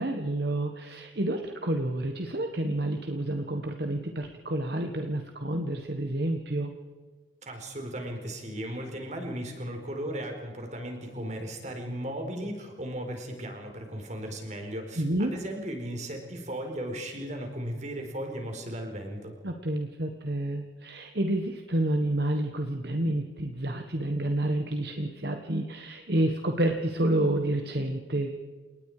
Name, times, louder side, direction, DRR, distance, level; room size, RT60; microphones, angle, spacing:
voice 1, 0.0-6.7 15.0-15.3 19.4-28.3, right 1 dB, 60° right, 5 dB, 1.5 m, -29 dB
voice 2, 7.4-19.3, right 1 dB, 40° right, 3 dB, 4.5 m, -36 dB
29.5 x 19.0 x 5.0 m, 1.4 s
head